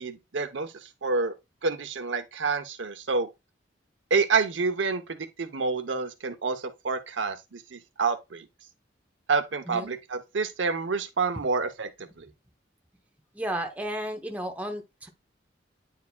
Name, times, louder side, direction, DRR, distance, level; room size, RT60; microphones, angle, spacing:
voice 1, 0.0-1.3 1.6-3.3 4.1-8.5 9.3-11.9 12.2-12.3, right 4 dB, 90° right, 0.8 m, -28 dB
voice 2, 13.3-15.1, right 1 dB, 10° right, 0.8 m, -33 dB
9.5 x 4.7 x 2.2 m
head